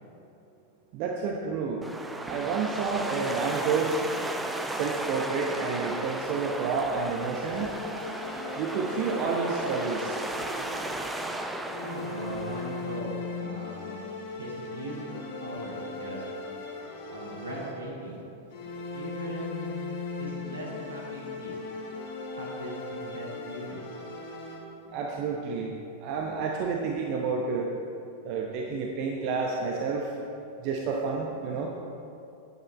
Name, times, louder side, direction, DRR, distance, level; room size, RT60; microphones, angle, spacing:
voice 1, 0.9-1.8 2.2-4.0 4.7-7.7 8.6-10.1 24.9-25.7 26.0-27.7 28.2-30.1 30.6-31.7, right 5 dB, 45° right, 0 dB, 0.8 m, -30 dB
sound 1, 1.8-13.0, right 1 dB, 5° right, 0.6 m, -35 dB
sound 2, 7.5-11.2 11.6-18.1 18.5-25.0, left 3 dB, 50° left, 1.5 m, -38 dB
voice 2, 11.8-14.1 14.4-16.2 17.1-18.7 18.9-19.8 20.2-21.6 22.3-23.8, right 1 dB, 80° right, -4 dB, 2.3 m, -39 dB
9.3 x 9.0 x 4.2 m, 2.7 s
figure-of-eight pair, 90°, 0 cm